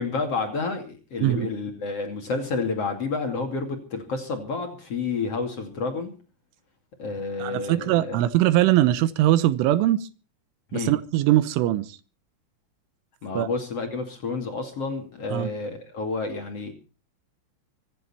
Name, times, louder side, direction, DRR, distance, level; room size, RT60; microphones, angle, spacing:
voice 1, 0.0-6.1 7.0-8.2 10.7-10.9 13.2-16.7, left 4 dB, 40° left, 2.8 m, -30 dB
voice 2, 7.4-10.1 10.7-12.0 13.4-13.5 15.3-15.5, right 14 dB, 85° right, 3.5 m, -21 dB
25.0 x 10.5 x 4.4 m
omnidirectional pair, 5.5 m